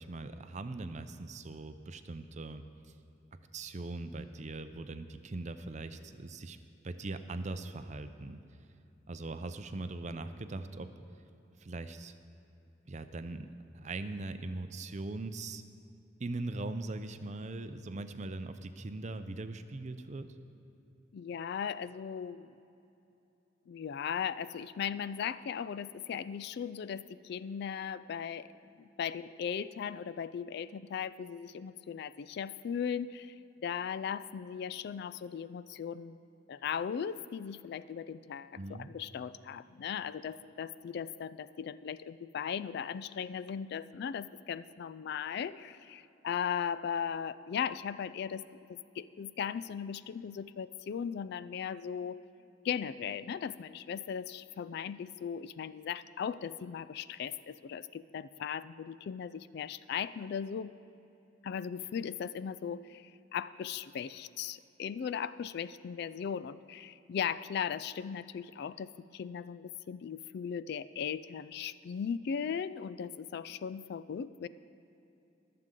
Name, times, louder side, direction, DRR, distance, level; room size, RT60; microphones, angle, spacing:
voice 1, 0.0-2.7 3.5-6.6 6.8-8.4 9.1-10.9 11.6-12.1 12.9-13.5 13.7-15.6 16.2-20.3 38.6-38.9, right 2 dB, 35° right, 10 dB, 0.5 m, -40 dB
voice 2, 21.1-22.6 23.7-28.5 28.8-33.3 33.6-36.2 36.5-48.4 48.7-52.2 52.6-60.7 61.4-74.5, left 7 dB, 55° left, 16 dB, 0.3 m, -38 dB
23.0 x 7.7 x 3.8 m, 2.9 s
head